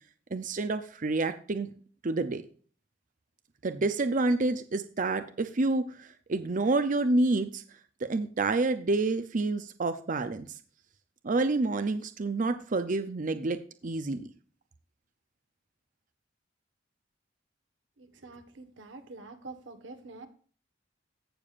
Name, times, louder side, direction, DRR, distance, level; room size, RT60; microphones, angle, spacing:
voice 1, 0.3-1.7 2.0-2.4 3.6-7.6 8.0-10.5 11.2-13.6 13.8-14.2, right 2 dB, 45° right, 10 dB, 0.6 m, -28 dB
voice 2, 18.2-20.3, right 3 dB, 70° right, 8 dB, 1.3 m, -46 dB
16.0 x 6.9 x 2.5 m, 0.42 s
head